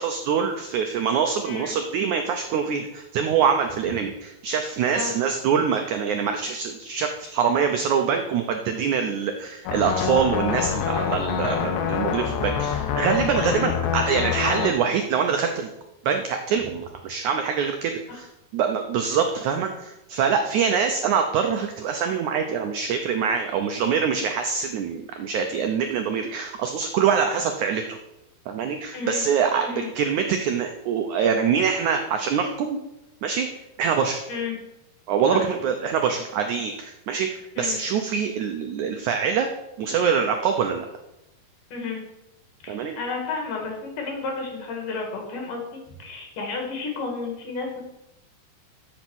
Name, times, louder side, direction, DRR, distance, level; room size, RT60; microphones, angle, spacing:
voice 1, 0.0-15.7 16.1-18.3 18.5-28.0 28.5-32.8 33.2-33.5 33.8-34.3 35.1-39.5 39.8-40.9 42.7-43.0, right 6 dB, 85° right, 5 dB, 1.7 m, -24 dB
voice 2, 1.4-1.8 4.9-5.1 18.1-18.2 28.9-29.3 29.6-29.9 34.3-34.6 35.3-35.4 37.6-37.8 41.7-42.0 42.6-47.8, left 4 dB, 60° left, 2 dB, 3.5 m, -32 dB
sound 1, 9.7-14.7, left 8 dB, 85° left, 1.7 m, -26 dB
12.5 x 5.5 x 6.1 m, 0.90 s
omnidirectional pair, 4.4 m